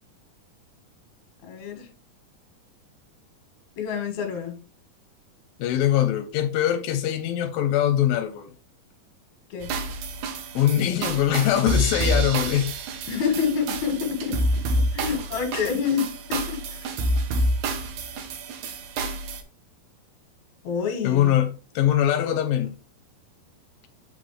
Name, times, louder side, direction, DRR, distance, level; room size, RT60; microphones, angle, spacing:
voice 1, 1.4-1.9 3.8-4.6 9.5-9.7 13.1-14.5 14.9-16.9 20.6-21.4, left 6 dB, 60° left, 2.7 m, -27 dB
voice 2, 5.6-8.5 10.5-12.7 21.0-22.7, left 11 dB, 90° left, 2.4 m, -22 dB
sound 1, 9.6-19.4, right 1 dB, 70° right, 2.1 m, -28 dB
8.1 x 3.8 x 3.3 m
omnidirectional pair, 4.1 m